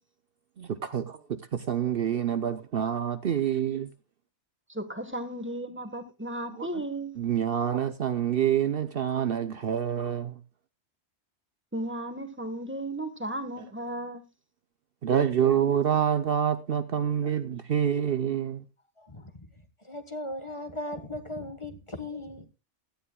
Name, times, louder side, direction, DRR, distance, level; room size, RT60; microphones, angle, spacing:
voice 1, 0.6-3.9 6.5-6.7 7.2-10.4 15.0-18.6, right 9 dB, 55° right, 0.9 m, -27 dB
voice 2, 4.7-7.1 11.7-14.2, right 1 dB, 10° right, 1.4 m, -35 dB
voice 3, 19.0-22.5, left 1 dB, 25° left, 1.4 m, -38 dB
17.0 x 13.0 x 2.3 m
omnidirectional pair, 1.2 m